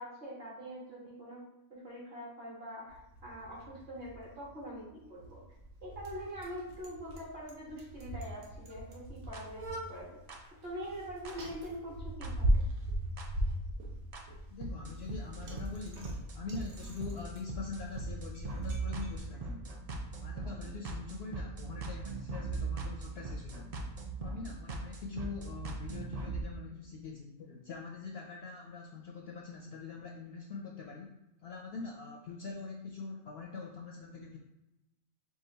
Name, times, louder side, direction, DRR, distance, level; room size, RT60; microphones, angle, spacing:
voice 1, 0.0-1.4 1.7-5.4 5.8-10.2 10.6-12.7, equal, 45° right, -5 dB, 1.7 m, -44 dB
Bicycle, 2.9-19.2, equal, 90° right, 1.3 m, -39 dB
sound 1, 9.3-9.4 10.3-10.4 11.3-11.4 12.2-12.3 13.2-13.3 14.1-14.2 14.6-26.4, right 3 dB, 65° right, 0.3 m, -40 dB
voice 2, 14.5-19.7 20.2-23.8 24.2-31.1 31.4-34.4, left 4 dB, 65° left, 1 dB, 0.6 m, -44 dB
4.9 x 2.5 x 3.9 m, 0.94 s
omnidirectional pair, 1.4 m